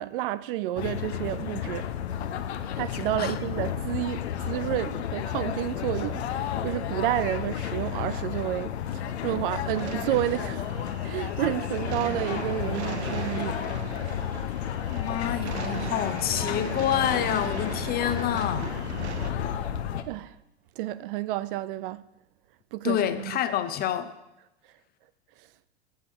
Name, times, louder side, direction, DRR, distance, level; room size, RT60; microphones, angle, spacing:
voice 1, 0.0-1.9 2.8-6.2 6.6-10.6 11.0-13.6 19.5-19.6 20.1-20.3 20.8-22.0 22.7-23.4, right 14 dB, 55° right, 0.4 m, -30 dB
sound 1, 0.8-20.0, left 9 dB, 75° left, 0.7 m, -32 dB
sound 2, 9.7-19.3, right 8 dB, 85° right, 0.7 m, -39 dB
voice 2, 14.9-18.7 22.8-24.1, left 10 dB, 30° left, 0.6 m, -28 dB
7.1 x 6.9 x 4.6 m
hypercardioid pair, 100°, 33 cm